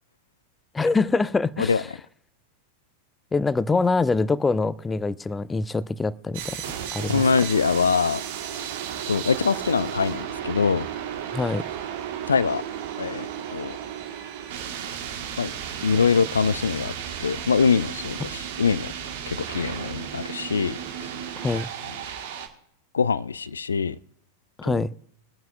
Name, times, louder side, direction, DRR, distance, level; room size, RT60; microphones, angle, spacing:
voice 1, 0.7-1.8 3.3-6.6 6.9-7.2 11.3-11.7 21.4-21.7 24.6-24.9, left 3 dB, 10° left, 0.5 m, -24 dB
sound 1, 6.3-22.5, right 9 dB, 55° right, 1.4 m, -34 dB
voice 2, 7.1-8.2 8.5-8.7 9.1-10.9 12.3-12.6 13.0-13.8 15.4-15.5 15.8-16.9 17.2-18.9 19.3-21.1 22.9-24.0 24.6-24.8, left 5 dB, 75° left, 0.4 m, -23 dB
23.0 x 9.1 x 2.4 m
figure-of-eight pair, 90°, 0 cm